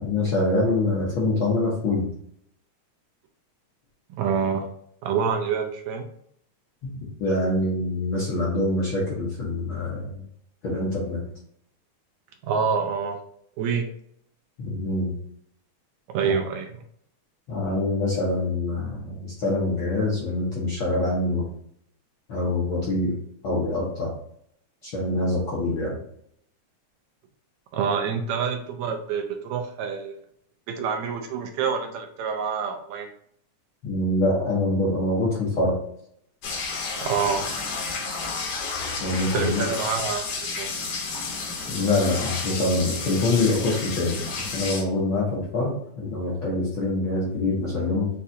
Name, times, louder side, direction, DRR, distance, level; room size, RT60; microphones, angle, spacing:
voice 1, 0.0-2.1 6.8-6.9 7.2-10.2 10.6-11.2 14.6-15.1 16.2-16.3 17.5-21.4 22.3-23.2 23.4-24.1 24.8-26.0 33.8-35.8 39.0-39.7 41.7-48.1, left 2 dB, 65° left, -6 dB, 1.3 m, -25 dB
voice 2, 4.1-4.7 5.0-6.1 12.4-13.2 13.6-13.9 16.1-16.7 27.7-30.1 30.7-33.1 37.0-37.5 39.3-40.7, right 6 dB, 80° right, 4 dB, 1.8 m, -27 dB
sound 1, 36.4-44.8, left 4 dB, 85° left, 2.6 m, -31 dB
6.7 x 2.4 x 2.7 m, 0.69 s
omnidirectional pair, 3.4 m